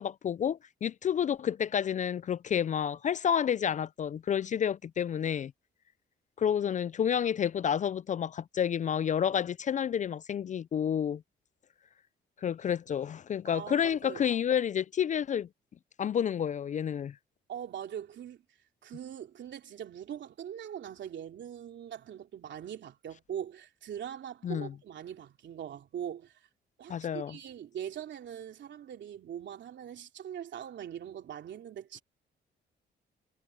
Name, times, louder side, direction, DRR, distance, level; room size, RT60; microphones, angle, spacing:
voice 1, 0.0-5.5 6.4-11.2 12.4-15.5 16.0-17.1 24.4-24.7 26.9-27.4, left 8 dB, 40° left, 0.4 m, -30 dB
voice 2, 13.5-14.2 17.5-18.4 18.8-26.4 26.8-32.0, right 9 dB, 65° right, 3.1 m, -42 dB
cardioid pair, 90°, 20 cm